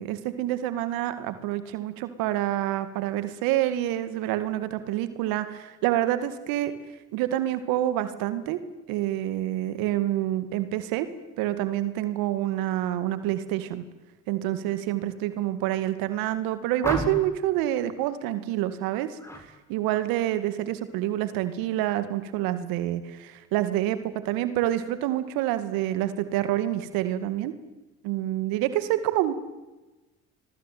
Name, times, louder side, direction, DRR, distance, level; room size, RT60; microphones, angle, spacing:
voice 1, 0.0-6.7 7.1-8.6 8.9-11.1 11.4-13.8 14.3-27.5 28.0-29.3, right 13 dB, 75° right, 12 dB, 2.2 m, -27 dB
sound 1, 16.8-17.4 19.2-19.5 19.8-20.2, equal, 5° left, 6.5 m, -33 dB
27.0 x 22.0 x 9.4 m, 1.1 s
hypercardioid pair, 55°, 35 cm